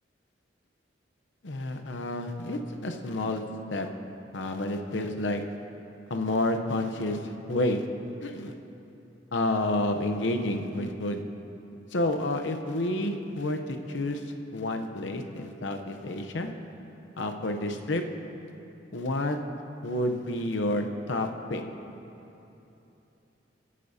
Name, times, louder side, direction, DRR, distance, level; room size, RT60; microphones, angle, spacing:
voice 1, 1.4-3.4 3.7-3.9 4.3-5.4 6.1-7.9 8.2-8.5 9.3-11.2 11.9-14.2 14.5-16.5 17.2-18.0 18.9-19.4 19.8-21.6, left 1 dB, 80° left, 5 dB, 0.8 m, -29 dB
24.0 x 8.3 x 2.8 m, 3.0 s
head